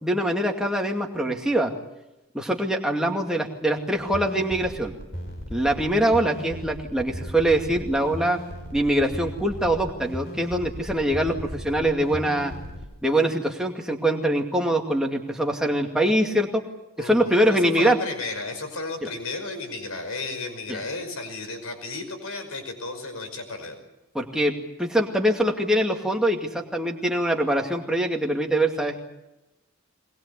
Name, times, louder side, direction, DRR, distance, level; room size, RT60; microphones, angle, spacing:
voice 1, 0.0-1.7 2.3-4.9 5.5-8.4 8.7-12.5 13.0-16.6 17.0-18.0 19.0-19.1 20.7-20.8 24.1-24.5 24.8-29.0, right 1 dB, 5° right, 1 dB, 2.3 m, -23 dB
sound 1, 3.9-12.8, equal, 50° left, 5.6 m, -37 dB
voice 2, 17.0-23.8, left 3 dB, 75° left, 7 dB, 5.5 m, -34 dB
22.5 x 21.5 x 8.4 m, 0.94 s
head